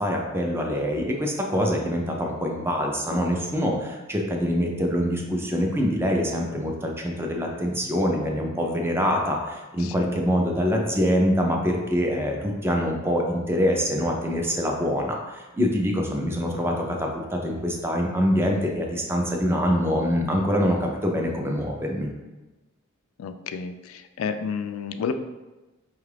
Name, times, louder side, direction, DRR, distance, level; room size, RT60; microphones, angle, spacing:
voice 1, 0.0-22.1, equal, 10° right, 1 dB, 0.5 m, -25 dB
voice 2, 9.8-10.1 23.2-25.1, left 6 dB, 80° left, 8 dB, 0.3 m, -31 dB
5.3 x 2.4 x 3.3 m, 1.1 s
head